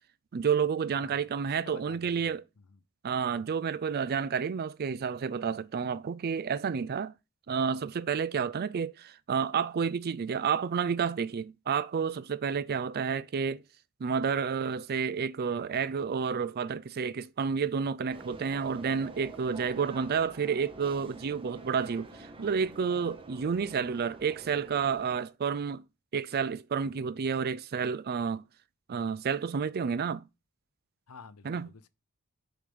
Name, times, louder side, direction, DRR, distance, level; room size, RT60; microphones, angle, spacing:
voice 1, 0.3-2.4 3.0-7.1 7.5-13.6 14.0-25.8 26.1-28.5 28.9-30.2 31.4-31.7, right 6 dB, 45° right, 0.4 m, -30 dB
voice 2, 0.9-1.2 1.6-2.8 31.1-31.9, left 5 dB, 75° left, 0.7 m, -51 dB
sound 1, 18.1-25.2, right 2 dB, 25° right, 0.9 m, -48 dB
6.5 x 5.0 x 6.0 m
head